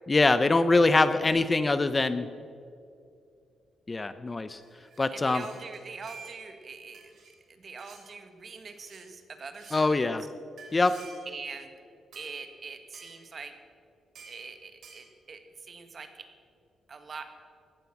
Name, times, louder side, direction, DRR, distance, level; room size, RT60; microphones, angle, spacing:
voice 1, 0.1-2.3 3.9-4.6 5.0-5.4 9.7-10.2 10.7-11.0, left 3 dB, 25° left, 12 dB, 0.6 m, -23 dB
sound 1, 4.5-6.6 6.9-7.4 7.8-8.0 8.7-9.1 9.5-9.9 10.6-11.4 12.1-12.3 12.9-13.2 14.1-14.4 14.8-15.1, right 5 dB, 70° right, 3.5 m, -50 dB
voice 2, 5.1-7.1 7.5-10.3 11.2-11.7 12.1-13.6 14.2-16.3 16.9-17.2, right 4 dB, 40° right, 7 dB, 1.6 m, -43 dB
16.5 x 12.0 x 6.0 m, 2.4 s
cardioid pair, 115°, 0 cm